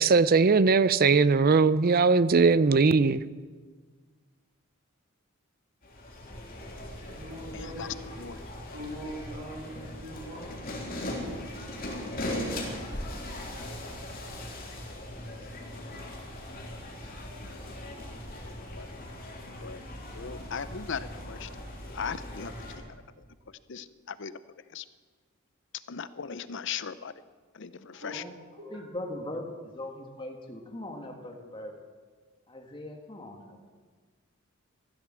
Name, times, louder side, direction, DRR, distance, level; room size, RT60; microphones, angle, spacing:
voice 1, 0.0-3.2, right 4 dB, 45° right, 16 dB, 0.5 m, -20 dB
sound 1, 5.8-22.8, left 1 dB, 45° left, 3.4 m, -39 dB
voice 2, 7.0-7.9 8.7-10.5 28.0-28.3 28.6-28.8, equal, 70° right, -9 dB, 4.9 m, -41 dB
voice 3, 7.5-7.9 8.2-8.4 18.1-19.0 19.6-19.8 20.1-21.5 21.9-22.8 23.5-24.3 24.7-24.8 25.9-27.1 27.5-28.2, left 6 dB, 60° left, 15 dB, 0.7 m, -38 dB
voice 4, 28.7-31.7 32.5-33.7, left 1 dB, 25° left, 2 dB, 1.7 m, -40 dB
15.0 x 12.0 x 7.6 m, 1.5 s
head